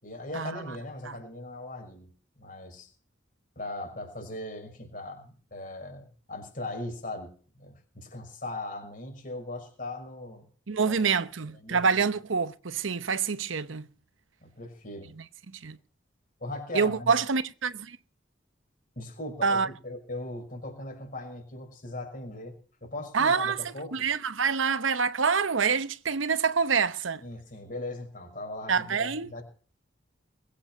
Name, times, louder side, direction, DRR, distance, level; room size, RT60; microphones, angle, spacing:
voice 1, 0.0-2.1 2.4-2.9 3.6-10.5 10.8-11.2 11.6-12.0 14.4-15.1 16.4-17.1 19.0-22.6 22.8-24.1 27.2-29.4, left 2 dB, 45° left, 6.0 m, -39 dB
voice 2, 10.7-13.9 15.2-15.3 15.5-15.8 16.7-18.0 19.4-19.7 23.1-23.6 23.9-27.2 28.7-29.3, right 5 dB, 85° right, 0.9 m, -26 dB
22.0 x 8.8 x 5.9 m
head